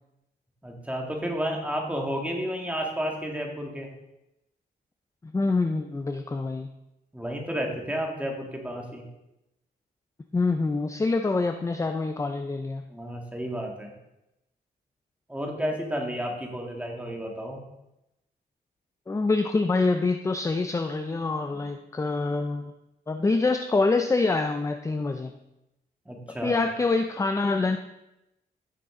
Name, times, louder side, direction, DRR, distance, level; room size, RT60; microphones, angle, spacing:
voice 1, 0.6-3.9 7.1-9.0 12.9-13.9 15.3-17.6 21.5-21.7 26.1-26.7, equal, 10° right, 0 dB, 1.9 m, -31 dB
voice 2, 5.2-6.7 10.3-12.8 19.1-22.7 23.1-25.3 26.4-27.8, left 3 dB, 20° left, 6 dB, 0.5 m, -25 dB
15.0 x 6.7 x 3.8 m, 0.91 s
cardioid pair, 115°, 17 cm